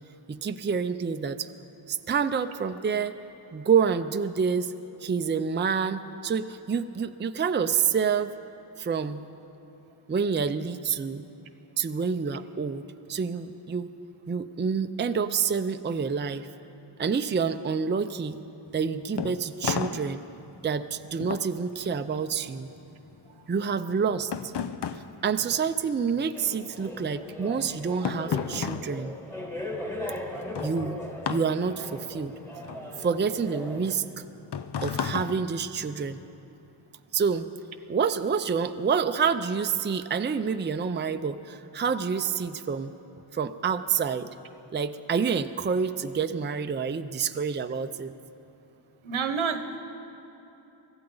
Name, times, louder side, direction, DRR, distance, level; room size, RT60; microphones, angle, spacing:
voice 1, 0.3-1.5 1.9-3.1 3.5-4.7 5.0-8.3 8.8-9.3 10.1-11.3 11.8-12.8 13.1-13.9 14.3-16.5 17.0-18.5 18.7-20.2 20.6-22.7 23.5-24.5 25.2-29.1 30.6-31.0 31.3-32.3 33.0-34.2 34.8-36.2 37.1-37.5 37.9-42.9 43.3-44.3 44.7-48.1, right 6 dB, 25° right, 9 dB, 0.5 m, -28 dB
sound 1, 18.7-26.3 26.6-36.3, left 7 dB, 55° left, 0.7 m, -35 dB
sound 2, 26.3-33.9, left 1 dB, 5° left, 1.6 m, -39 dB
voice 2, 49.0-49.8, right 5 dB, 80° right, 8 dB, 1.1 m, -28 dB
24.5 x 15.0 x 3.9 m, 2.9 s
wide cardioid pair, 75°, 48 cm